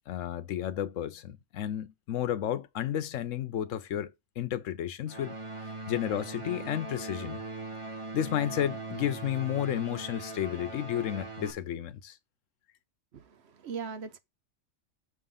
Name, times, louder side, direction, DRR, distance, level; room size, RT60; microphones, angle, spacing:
voice 1, 0.1-7.4 8.1-12.2, left 11 dB, 90° left, 1.1 m, -32 dB
sound 1, 5.1-11.5, right 3 dB, 30° right, 0.8 m, -40 dB
voice 2, 13.1-14.2, right 6 dB, 65° right, 1.0 m, -40 dB
6.1 x 3.7 x 5.5 m
omnidirectional pair, 1.3 m